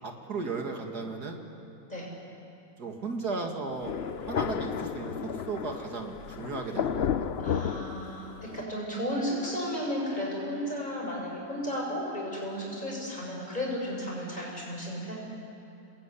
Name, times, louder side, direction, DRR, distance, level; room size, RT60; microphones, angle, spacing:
voice 1, 0.0-1.4 2.8-3.9 4.2-7.6, right 3 dB, 60° right, 3 dB, 2.7 m, -35 dB
Thunder, 3.8-8.6, left 8 dB, 65° left, 0.6 m, -33 dB
voice 2, 7.4-15.2, equal, 25° left, -3 dB, 7.3 m, -34 dB
27.0 x 20.5 x 10.0 m, 2.8 s
omnidirectional pair, 2.0 m